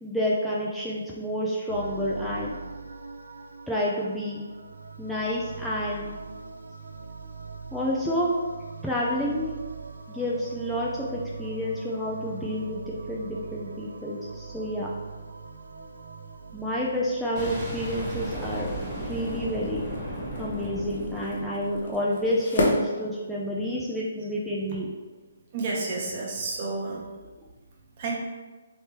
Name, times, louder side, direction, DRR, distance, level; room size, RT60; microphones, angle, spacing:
voice 1, 0.0-2.6 3.7-4.4 5.0-6.1 7.7-8.3 8.8-9.6 10.1-14.9 16.5-18.7 19.0-19.8 20.4-24.9, equal, ahead, -7 dB, 0.4 m, -29 dB
sound 1, 1.7-18.8, right 4 dB, 90° right, 0.4 m, -41 dB
Boom, 17.4-22.2, right 1 dB, 15° right, 1.2 m, -35 dB
sound 2, 17.8-23.8, left 1 dB, 60° left, 0.7 m, -34 dB
voice 2, 25.5-27.1 28.0-28.1, right 3 dB, 40° right, -3 dB, 0.9 m, -30 dB
3.3 x 3.1 x 2.9 m, 1.3 s
hypercardioid pair, 150°, 0 cm